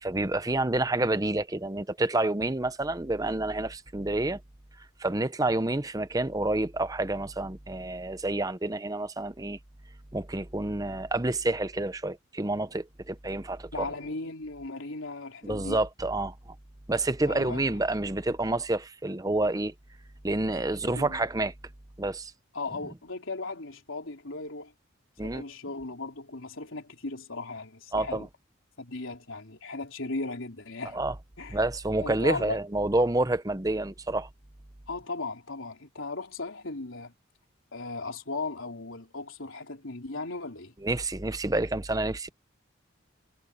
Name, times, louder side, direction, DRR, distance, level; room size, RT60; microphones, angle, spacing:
voice 1, 0.0-4.4 5.0-9.6 10.1-13.9 15.4-16.3 16.9-19.7 20.2-21.5 22.0-22.3 25.2-25.4 27.9-28.3 30.9-31.1 31.5-34.3 40.8-42.3, right 2 dB, 15° right, 0.7 m, -28 dB
voice 2, 13.7-15.8 17.3-17.7 20.9-21.2 22.5-24.7 25.2-28.3 28.8-31.0 31.4-31.6 32.0-32.6 34.9-37.1 37.7-40.7, left 3 dB, 70° left, 3.6 m, -37 dB
head